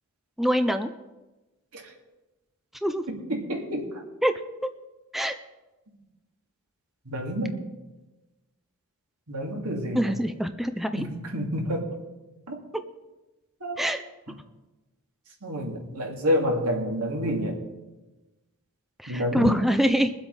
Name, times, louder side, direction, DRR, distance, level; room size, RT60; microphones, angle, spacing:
voice 1, 0.4-0.9 2.8-3.0 4.2-4.3 5.1-5.3 9.9-11.0 13.8-14.0 19.0-20.1, equal, ahead, 8 dB, 0.5 m, -24 dB
voice 2, 3.1-3.9 7.1-7.6 9.3-10.1 11.0-11.9 12.5-12.6 13.6-13.8 15.4-17.6 19.1-19.6, equal, 85° right, 0 dB, 2.6 m, -28 dB
22.0 x 7.9 x 4.1 m, 1.1 s
head